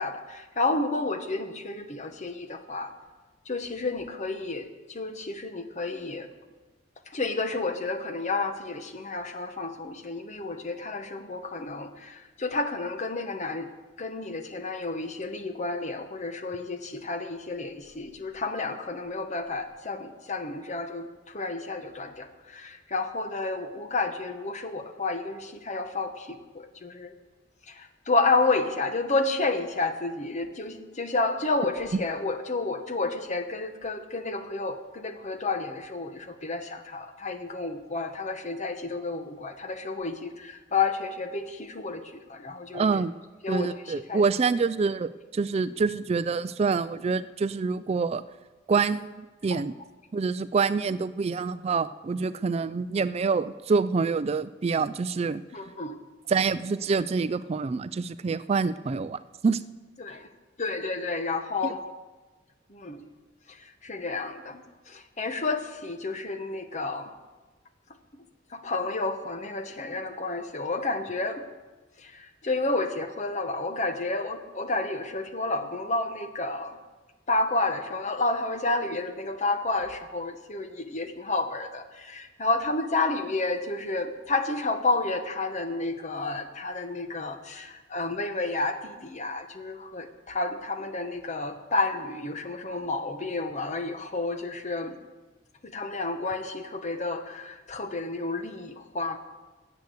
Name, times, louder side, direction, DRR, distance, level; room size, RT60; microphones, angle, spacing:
voice 1, 0.0-2.9 3.5-6.3 7.1-13.7 14.0-27.1 27.7-42.9 43.4-44.2 49.5-49.6 55.5-56.0 60.0-60.3 60.6-61.8 62.7-63.0 63.5-67.1 68.5-71.4 72.0-76.8 77.3-94.9 95.6-99.2, left 3 dB, 40° left, 8 dB, 1.1 m, -30 dB
voice 2, 42.7-43.1 43.5-48.2 48.7-49.7 50.1-55.4 56.3-59.6 61.6-61.7, right 4 dB, 35° right, 14 dB, 0.3 m, -26 dB
13.0 x 8.2 x 8.1 m, 1.2 s
head